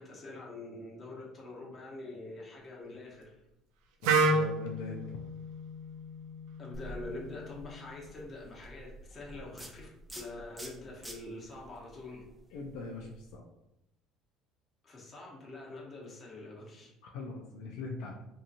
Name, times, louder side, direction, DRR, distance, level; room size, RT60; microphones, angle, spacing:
voice 1, 0.0-3.3 6.6-12.2 14.8-16.9, left 2 dB, 35° left, -3 dB, 1.0 m, -45 dB
voice 2, 4.0-5.0 12.5-13.4 17.0-18.1, left 3 dB, 80° left, 0 dB, 0.4 m, -41 dB
Wind instrument woodwind instrument, 4.0-7.9, right 3 dB, 85° right, 0.4 m, -32 dB
sound 1, 6.7-13.4, right 1 dB, 10° right, 0.5 m, -49 dB
2.7 x 2.7 x 2.5 m, 0.86 s
supercardioid pair, 90°, 0 cm